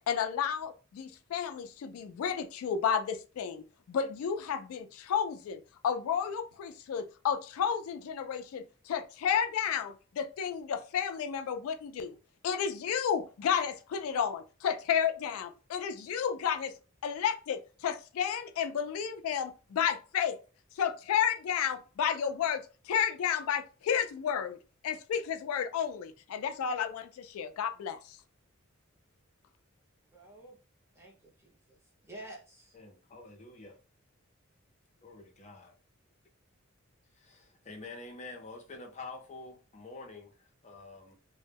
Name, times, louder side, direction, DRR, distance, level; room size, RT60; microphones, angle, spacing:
voice 1, 0.1-12.2 12.4-16.7 17.0-20.4 20.8-24.6 24.8-28.2, left 8 dB, 85° left, 0.3 m, -32 dB
voice 2, 30.1-30.5 30.9-31.8 32.0-32.8, right 1 dB, 15° right, 0.7 m, -50 dB
voice 3, 32.7-33.8 35.0-35.7 37.2-41.2, left 3 dB, 35° left, 0.6 m, -47 dB
2.1 x 2.0 x 3.3 m
head